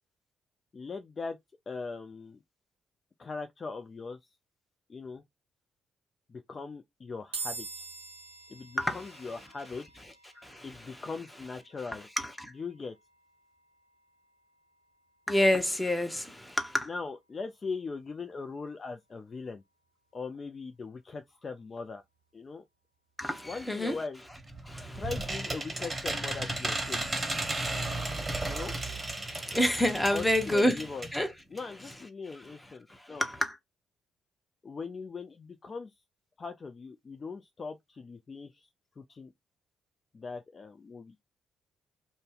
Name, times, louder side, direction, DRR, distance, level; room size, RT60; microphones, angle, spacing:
voice 1, 0.7-1.4 1.7-2.4 3.2-4.2 4.9-5.2 6.3-7.9 8.5-10.0 10.6-12.1 12.5-12.9 16.9-19.6 20.1-22.0 22.3-22.6 23.4-24.2 24.9-27.0 28.5-28.7 30.1-31.1 31.5-33.2 34.6-35.9 36.4-38.7 39.0-39.3 40.1-41.1, left 4 dB, 35° left, 0.3 m, -40 dB
sound 1, 7.3-20.7, right 4 dB, 80° right, 0.5 m, -49 dB
voice 2, 10.4-10.9 12.2-12.5 15.3-16.9 23.2-24.0 24.7-25.0 27.0-28.6 29.3-30.8 31.1-31.3 33.2-33.5, left 1 dB, 10° left, 0.8 m, -29 dB
sound 2, 24.3-31.2 31.6-31.7 31.9-32.0, right 2 dB, 25° right, 0.8 m, -34 dB
2.5 x 2.0 x 3.8 m
figure-of-eight pair, 40°, 0 cm